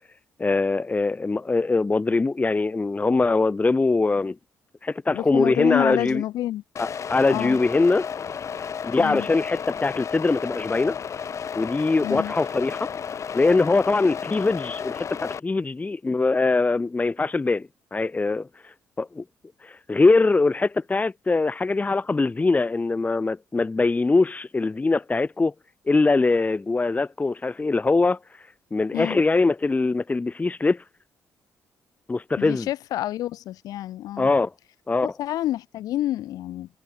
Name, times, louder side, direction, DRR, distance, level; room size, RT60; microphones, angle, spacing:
voice 1, 0.4-4.4 4.8-6.2 6.8-8.1 8.8-11.0 11.5-12.9 13.3-18.5 19.0-19.2 19.6-25.5 25.9-28.2 28.7-30.8 32.1-32.7 34.2-34.5 34.9-35.1, left 3 dB, 25° left, 1.2 m, -22 dB
voice 2, 5.1-6.6 7.3-7.6 9.0-9.3 12.0-12.3 28.9-29.2 32.4-34.3 35.2-36.7, left 13 dB, 80° left, 3.0 m, -28 dB
sound 1, 6.8-15.4, left 7 dB, 55° left, 6.7 m, -33 dB
supercardioid pair, 70°, 6 cm